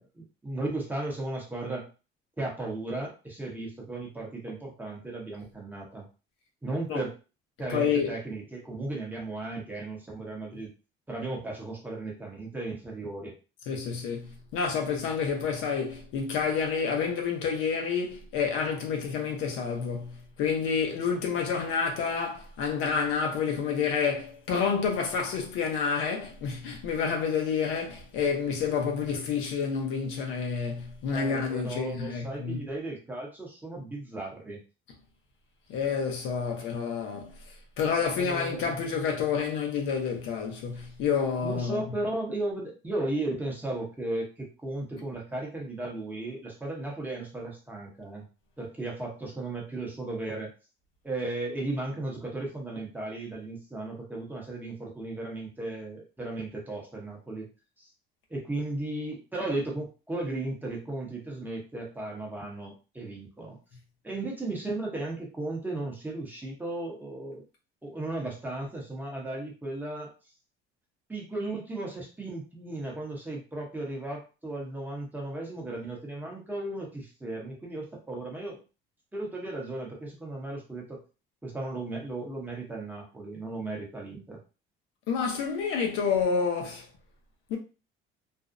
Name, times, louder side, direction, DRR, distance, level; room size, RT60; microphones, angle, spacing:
voice 1, 0.0-1.9 2.4-6.1 6.6-7.1 7.6-10.7 11.1-13.3 31.1-34.6 38.2-38.8 41.4-48.3 48.6-50.5 51.0-57.5 57.8-57.9 58.3-63.6 64.0-67.4 67.8-70.1 71.1-78.6 79.1-81.0 81.4-84.4, right 2 dB, 10° right, 0.8 m, -35 dB
voice 2, 7.7-8.1 13.7-32.6 35.7-37.4 37.8-41.8 85.1-86.9 87.5-87.6, left 6 dB, 80° left, 0.7 m, -29 dB
2.5 x 2.0 x 2.5 m
cardioid pair, 130°, 21 cm